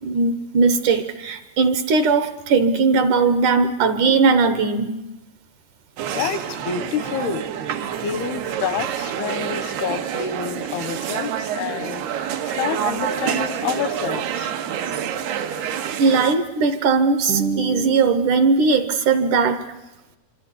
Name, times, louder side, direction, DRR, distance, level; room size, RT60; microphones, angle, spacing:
voice 1, 0.0-5.0 16.0-19.6, right 4 dB, 65° right, 10 dB, 2.3 m, -19 dB
sound 1, 6.0-16.4, right 9 dB, 85° right, 3.5 m, -27 dB
voice 2, 6.1-7.5 8.0-12.1 12.5-14.5, left 8 dB, 85° left, 14 dB, 3.0 m, -28 dB
26.0 x 25.5 x 8.4 m, 1.0 s
omnidirectional pair, 4.4 m